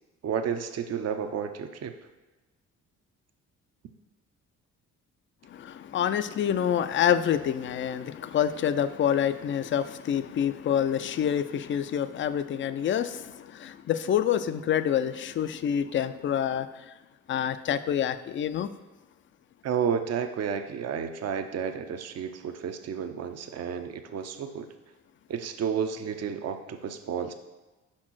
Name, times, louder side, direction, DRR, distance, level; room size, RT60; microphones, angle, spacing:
voice 1, 0.2-1.9 19.6-24.7 25.3-27.3, right 7 dB, 55° right, 7 dB, 0.7 m, -31 dB
voice 2, 5.5-16.9 17.3-18.7, left 9 dB, 40° left, 12 dB, 0.4 m, -27 dB
5.4 x 4.4 x 6.1 m, 1.2 s
cardioid pair, 90°, 30 cm